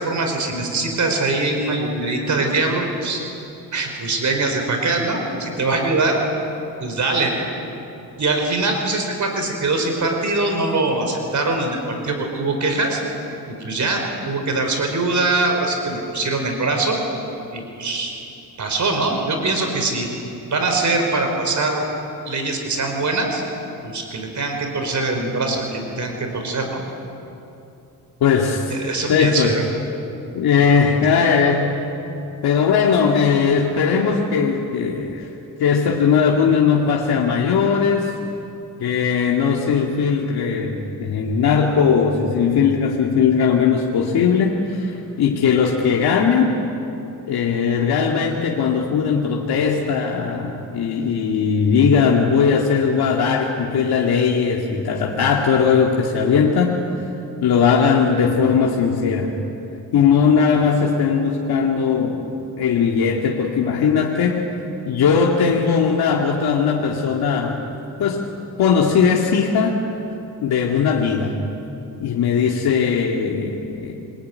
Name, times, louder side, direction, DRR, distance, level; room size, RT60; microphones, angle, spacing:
voice 1, 0.0-3.2 3.7-6.2 6.8-7.5 8.2-13.0 13.5-17.0 17.5-18.1 18.6-20.1 20.5-21.8 22.3-23.4 23.8-26.8 28.7-29.7, right 3 dB, 50° right, 3 dB, 4.8 m, -22 dB
voice 2, 28.2-28.8 29.1-29.6 30.3-31.7 32.4-35.3 35.6-38.1 38.8-46.6 47.3-56.8 57.4-59.3 59.9-62.3 62.6-64.5 64.9-67.6 68.0-68.3 68.6-69.8 70.4-71.4 72.0-74.0, left 6 dB, 85° left, -1 dB, 2.3 m, -19 dB
27.0 x 22.0 x 9.6 m, 2.9 s
cardioid pair, 95°, 37 cm